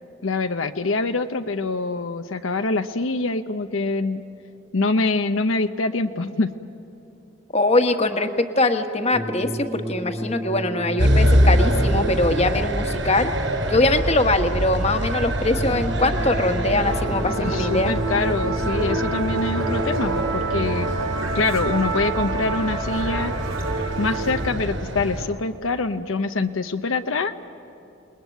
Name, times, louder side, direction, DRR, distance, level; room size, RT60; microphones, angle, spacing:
voice 1, 0.2-4.2 4.7-6.5 17.4-20.9 21.3-23.3 24.0-27.3, left 3 dB, 75° left, 8 dB, 0.8 m, -24 dB
voice 2, 7.5-13.3 13.7-17.9, left 2 dB, 30° left, 6 dB, 1.3 m, -22 dB
sound 1, 9.1-12.6 15.5-20.6, equal, ahead, 0.5 m, -32 dB
sound 2, 11.0-25.2, equal, 60° right, 6.8 m, -25 dB
Musical instrument, 16.7-24.5, right 3 dB, 85° right, 2.9 m, -28 dB
29.0 x 20.5 x 9.3 m, 2.9 s
head